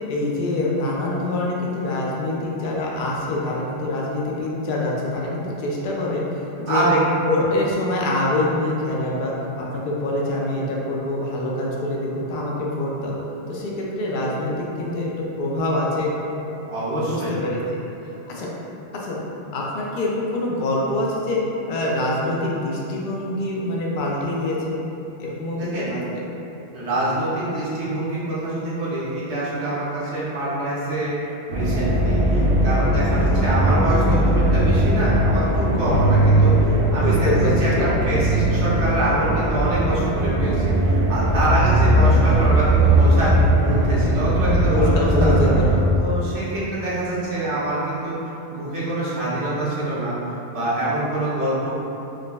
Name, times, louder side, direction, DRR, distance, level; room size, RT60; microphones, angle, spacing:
voice 1, 0.1-6.9 7.3-13.1 13.5-15.1 15.4-16.1 16.9-17.6 18.3-18.5 18.9-19.2 19.5-21.4 21.7-24.8 25.2-26.2 37.0-37.9 44.7-45.8, left 1 dB, 55° left, -3 dB, 0.6 m, -25 dB
voice 2, 6.7-7.0 16.7-17.4 25.6-25.9 26.7-31.2 31.5-37.2 37.4-43.3 43.6-45.5 46.0-48.2 48.5-50.2 50.5-51.7, right 1 dB, 75° right, -10 dB, 1.0 m, -25 dB
sound 1, 31.5-45.7, right 1 dB, 50° right, 0.7 m, -19 dB
5.0 x 2.0 x 2.2 m, 3.0 s
omnidirectional pair, 1.2 m